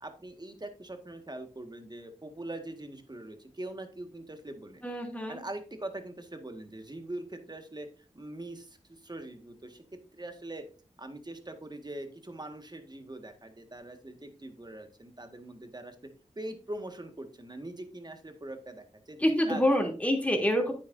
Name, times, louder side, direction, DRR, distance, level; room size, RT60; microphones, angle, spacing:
voice 1, 0.0-4.8 5.3-7.9 8.1-9.8 10.1-10.7 11.0-16.0 16.4-19.2 19.5-19.6, right 1 dB, 35° right, 6 dB, 1.8 m, -42 dB
voice 2, 4.8-5.4 19.2-20.7, equal, 10° left, 1 dB, 3.0 m, -26 dB
9.6 x 8.6 x 2.7 m, 0.37 s
cardioid pair, 40°, 13 cm